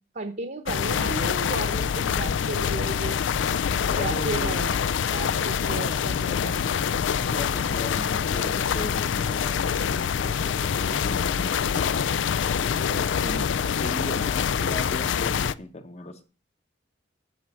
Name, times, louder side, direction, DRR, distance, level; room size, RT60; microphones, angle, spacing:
voice 1, 0.1-3.2 4.0-4.8 5.1-6.6 13.2-13.5, right 3 dB, 50° right, 0.9 m, -34 dB
sound 1, 0.7-15.5, left 7 dB, 80° left, 0.4 m, -25 dB
voice 2, 3.8-4.6 5.6-6.3 7.0-12.0 12.5-13.4 13.8-16.2, left 1 dB, 35° left, 1.0 m, -38 dB
8.9 x 6.1 x 7.3 m
head